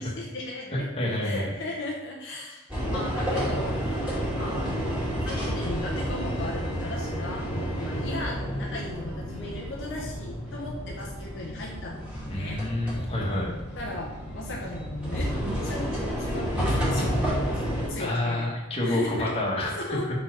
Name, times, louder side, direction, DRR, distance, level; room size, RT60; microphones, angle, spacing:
voice 1, 0.0-0.9 1.2-4.7 5.2-12.6 13.8-15.3 15.6-17.2 17.5-18.5 18.8-19.3 19.8-20.1, left 2 dB, 55° left, -1 dB, 0.8 m, -37 dB
voice 2, 1.0-1.5 12.3-13.5 18.0-19.8, left 1 dB, 25° left, -3 dB, 1.4 m, -28 dB
sound 1, 2.7-17.9, equal, 5° right, 2.2 m, -30 dB
5.6 x 4.5 x 4.7 m, 1.0 s
head